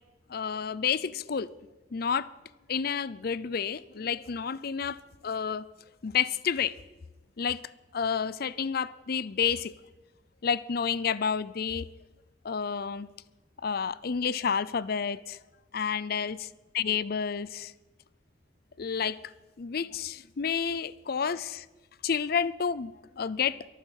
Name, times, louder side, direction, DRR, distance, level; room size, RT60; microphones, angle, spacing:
voice 1, 0.3-1.5 1.9-2.3 2.7-5.0 5.2-5.7 6.0-6.7 7.4-7.6 7.9-9.7 10.4-11.9 12.4-13.1 13.6-15.4 15.7-16.4 16.7-17.7 18.8-19.3 19.6-21.7 22.0-23.7, left 6 dB, 50° left, 0.5 m, -30 dB
23.5 x 9.2 x 6.4 m
head